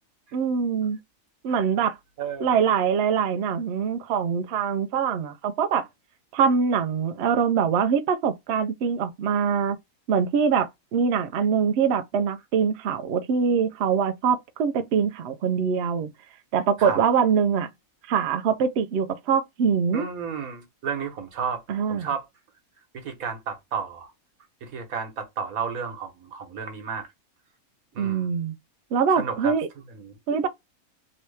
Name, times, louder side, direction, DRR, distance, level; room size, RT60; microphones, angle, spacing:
voice 1, 0.3-1.0 1.4-2.0 2.4-5.9 6.3-9.8 10.1-16.1 16.5-17.7 18.1-20.1 21.7-22.1 28.0-28.5 28.9-29.7 30.3-30.5, right 6 dB, 65° right, 0.7 m, -23 dB
voice 2, 2.2-2.6 16.8-17.0 19.9-21.6 21.9-22.2 22.9-24.1 24.6-27.1 27.9-28.3 29.2-29.5 29.9-30.1, right 6 dB, 80° right, 1.4 m, -32 dB
3.0 x 2.8 x 3.2 m
omnidirectional pair, 1.5 m